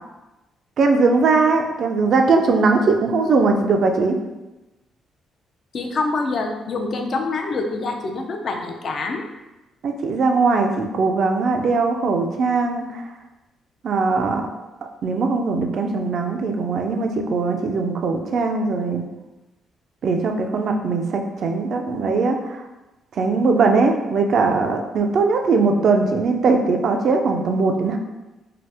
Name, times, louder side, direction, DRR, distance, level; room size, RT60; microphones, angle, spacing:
voice 1, 0.8-4.2 9.8-13.0 13.8-14.4 15.0-19.0 20.0-22.6 23.2-28.0, right 4 dB, 60° right, 4 dB, 0.3 m, -20 dB
voice 2, 5.7-9.2, left 3 dB, 55° left, 3 dB, 0.4 m, -25 dB
2.8 x 2.0 x 3.3 m, 1.0 s
cardioid pair, 90°, 0 cm